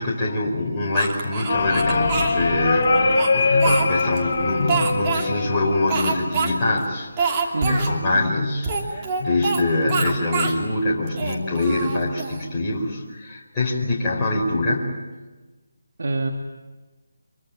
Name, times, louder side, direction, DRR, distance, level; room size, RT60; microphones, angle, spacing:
voice 1, 0.0-14.9, left 2 dB, 15° left, -6 dB, 4.6 m, -24 dB
Speech, 0.9-2.3 2.9-4.2 4.7-5.3 5.9-6.5 6.8-6.9 7.2-7.9 8.6-9.6 9.9-10.6 11.1-12.4, right 5 dB, 25° right, 3.0 m, -26 dB
sound 1, 1.5-6.5 7.7-8.2, left 3 dB, 40° left, 6.3 m, -23 dB
voice 2, 16.0-16.3, right 2 dB, 65° right, 3 dB, 2.4 m, -25 dB
25.5 x 24.5 x 8.8 m, 1.2 s
figure-of-eight pair, 155°, 0 cm